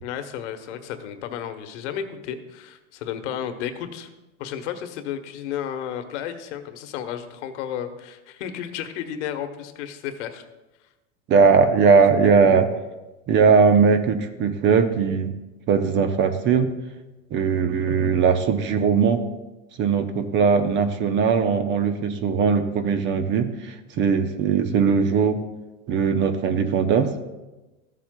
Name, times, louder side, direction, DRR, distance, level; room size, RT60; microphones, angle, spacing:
voice 1, 0.0-4.1 4.4-10.4 12.2-12.3, left 9 dB, 70° left, 8 dB, 1.1 m, -33 dB
voice 2, 11.3-12.7 13.3-15.3 15.7-16.8 17.3-19.2 19.8-25.4 25.9-27.1, right 5 dB, 30° right, 9 dB, 0.7 m, -19 dB
14.5 x 7.5 x 2.2 m, 1.1 s
supercardioid pair, 140°, 37 cm